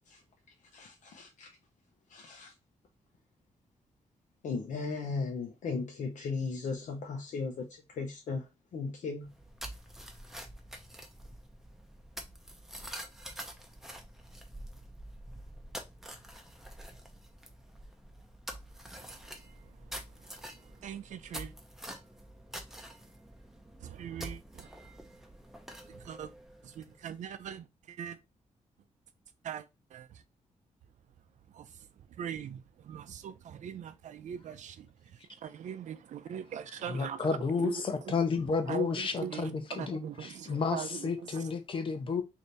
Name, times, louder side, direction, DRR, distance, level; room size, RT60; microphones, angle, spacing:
voice 1, 0.7-1.5 2.1-2.5 4.4-9.3, left 4 dB, 80° left, 0.8 m, -37 dB
sound 1, 9.2-27.2, right 1 dB, 5° right, 0.6 m, -47 dB
voice 2, 19.0-21.5 23.8-24.7 25.8-26.3 26.6-28.2 29.4-30.2 31.5-38.2 38.7-41.5, right 8 dB, 75° right, 0.5 m, -42 dB
voice 3, 36.9-42.2, left 5 dB, 45° left, 0.7 m, -32 dB
3.3 x 2.8 x 4.0 m
wide cardioid pair, 150°, 12 cm